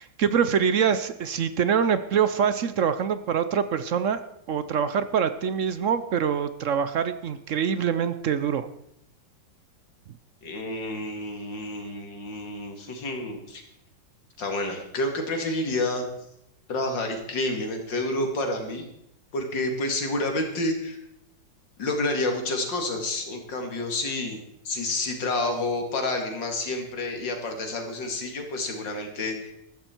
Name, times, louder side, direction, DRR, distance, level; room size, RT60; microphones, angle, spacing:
voice 1, 0.0-8.7, right 7 dB, 65° right, 12 dB, 0.8 m, -25 dB
voice 2, 10.4-13.6 14.4-16.0 16.7-18.9 19.3-21.0 21.8-29.5, left 2 dB, 75° left, 4 dB, 2.9 m, -29 dB
14.5 x 13.5 x 4.5 m, 0.78 s
omnidirectional pair, 2.0 m